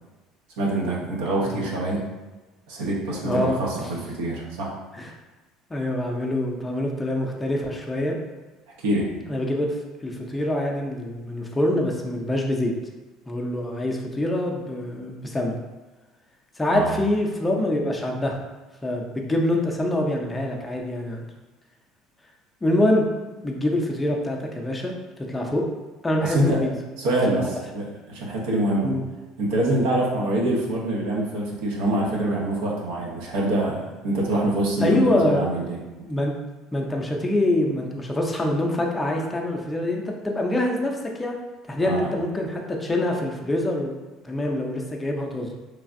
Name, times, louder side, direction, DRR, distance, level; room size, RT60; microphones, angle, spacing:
voice 1, 0.6-2.0 2.7-4.8 8.8-9.1 16.7-16.9 26.2-26.6 27.0-28.9 29.4-35.8 41.8-42.1, right 1 dB, 85° right, -3 dB, 0.7 m, -25 dB
voice 2, 3.2-3.6 4.9-5.1 5.7-8.2 9.3-9.8 10.0-12.7 13.3-15.6 16.6-18.4 18.8-21.3 22.6-23.1 23.4-24.9 25.3-25.6 26.0-26.7 27.3-27.4 28.8-29.0 34.8-35.6 35.9-36.3 36.7-41.4 41.7-44.0 44.2-45.5, left 1 dB, 15° left, 0 dB, 0.5 m, -25 dB
3.2 x 2.3 x 2.5 m, 1.2 s
supercardioid pair, 110°, 0 cm